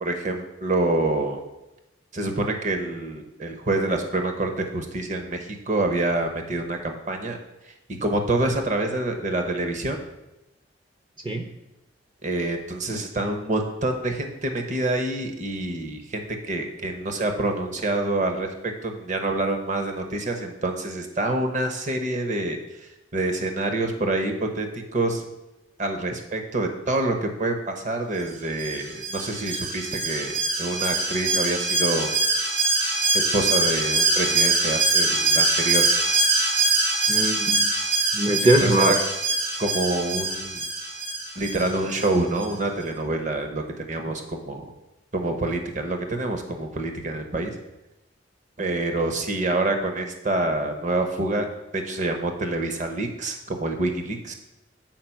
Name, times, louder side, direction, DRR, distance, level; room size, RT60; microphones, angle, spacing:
voice 1, 0.0-1.4 2.1-7.4 7.9-10.0 12.2-25.2 25.8-32.1 33.3-35.9 38.4-39.0 39.6-40.6 41.4-44.7 45.1-47.6 48.6-51.5 51.7-54.3, right 2 dB, 40° right, 5 dB, 0.9 m, -27 dB
Alarm, 28.6-42.1 42.4-42.5, right 3 dB, 60° right, 2.7 m, -23 dB
voice 2, 37.1-37.7 38.1-39.0, right 1 dB, 25° right, 5 dB, 0.6 m, -21 dB
7.5 x 4.8 x 5.8 m, 0.95 s
head